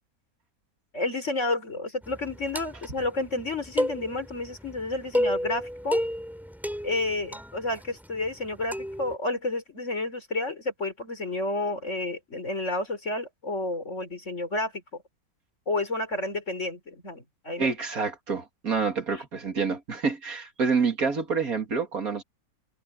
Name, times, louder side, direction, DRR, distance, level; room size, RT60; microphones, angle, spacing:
voice 1, 0.9-6.0 6.8-15.0 15.7-17.7 19.1-19.2, left 2 dB, 55° left, 4.6 m, -30 dB
sound 1, 2.0-9.2, equal, ahead, 4.8 m, -32 dB
voice 2, 17.6-22.2, right 5 dB, 70° right, 3.1 m, -27 dB
omnidirectional pair, 1.6 m